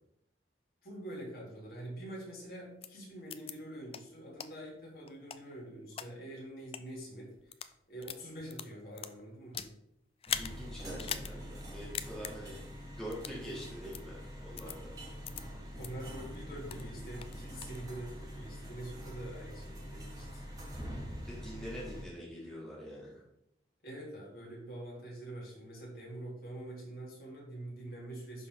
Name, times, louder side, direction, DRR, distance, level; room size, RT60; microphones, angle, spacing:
voice 1, 0.8-7.5 7.9-9.7 15.7-20.4 23.8-28.5, right 1 dB, 55° left, -4 dB, 2.6 m, -45 dB
sound 1, 2.8-2.9 3.3-3.5 3.9-4.0 4.4-4.5 5.1-6.1 6.6-6.8 7.4-7.7 8.0-9.7 10.2-10.5 11.0-11.3 11.6-11.7 11.9-12.3 13.1-13.4 13.9-14.0 14.6-14.8 15.2-15.4 15.8-15.9 16.3-16.9 17.2-17.8, left 9 dB, 30° left, 0.3 m, -40 dB
sound 2, 10.3-22.0, equal, 20° right, 1.4 m, -45 dB
voice 2, 10.4-12.6 12.9-14.9 21.1-23.2, equal, 5° left, -6 dB, 1.7 m, -45 dB
11.0 x 3.8 x 3.6 m, 0.77 s
head